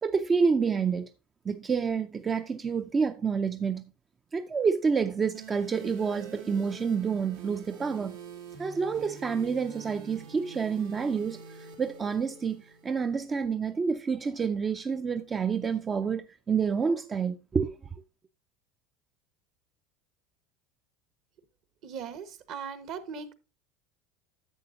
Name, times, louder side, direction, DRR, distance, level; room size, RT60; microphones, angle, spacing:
voice 1, 0.0-1.1 1.4-3.8 4.3-8.2 8.6-17.8, right 5 dB, 25° right, 0.4 m, -28 dB
sound 1, 5.3-13.3, right 5 dB, 90° right, 2.2 m, -46 dB
voice 2, 21.8-23.3, right 6 dB, 55° right, 1.2 m, -39 dB
11.0 x 7.7 x 2.6 m
supercardioid pair, 115°, 0 cm